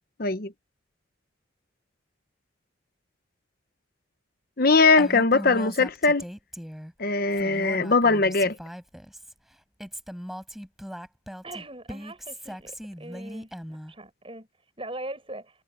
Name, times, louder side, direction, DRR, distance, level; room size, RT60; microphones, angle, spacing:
voice 1, 0.2-0.5 4.6-6.2 7.0-8.6, left 3 dB, 50° left, 0.9 m, -21 dB
Female speech woman speaking, 5.0-6.9 7.3-9.3 9.8-13.9, equal, ahead, 7.4 m, -39 dB
voice 2, 11.4-13.5 13.9-15.6, right 2 dB, 30° right, 7.5 m, -41 dB
head